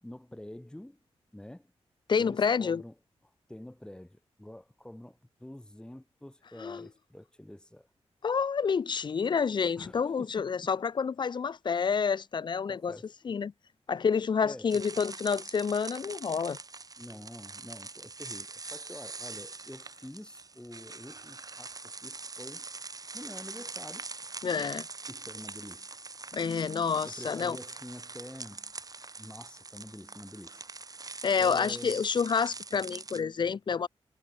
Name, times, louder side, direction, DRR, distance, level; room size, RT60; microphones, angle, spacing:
voice 1, 0.0-1.0 1.3-1.7 2.2-2.9 3.5-7.9 9.8-10.4 12.7-13.1 14.4-14.8 17.0-22.7 23.1-24.1 25.1-26.0 27.1-28.7 29.2-30.6 31.4-32.0, left 1 dB, 5° left, 2.5 m, -47 dB
voice 2, 2.1-2.8 6.6-6.9 8.2-13.0 13.2-13.5 13.9-16.6 24.4-24.9 26.3-27.6 31.2-33.9, left 6 dB, 45° left, 0.5 m, -28 dB
sound 1, 14.7-33.2, right 3 dB, 35° right, 2.1 m, -43 dB
wide cardioid pair, 100°, 11 cm